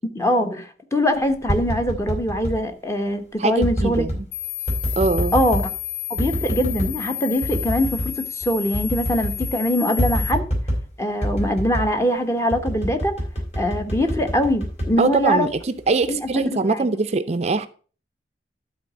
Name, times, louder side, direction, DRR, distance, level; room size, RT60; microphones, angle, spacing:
voice 1, 0.1-4.0 5.3-5.7 6.1-10.5 11.0-13.1 13.6-15.5 16.1-16.8, equal, 15° left, 1.0 m, -23 dB
sound 1, 1.2-2.6 3.6-4.2 4.7-5.7 6.2-7.0 7.4-8.1 8.4-8.5 8.7-9.6 10.0-10.9 11.2-12.0 12.5-15.6 16.0-16.4, equal, 40° left, 3.5 m, -26 dB
voice 2, 3.4-4.3 5.0-5.3 15.0-17.7, right 3 dB, 40° right, 0.5 m, -22 dB
sound 2, 4.3-10.3, left 12 dB, 85° left, 0.8 m, -31 dB
12.0 x 4.1 x 6.0 m
head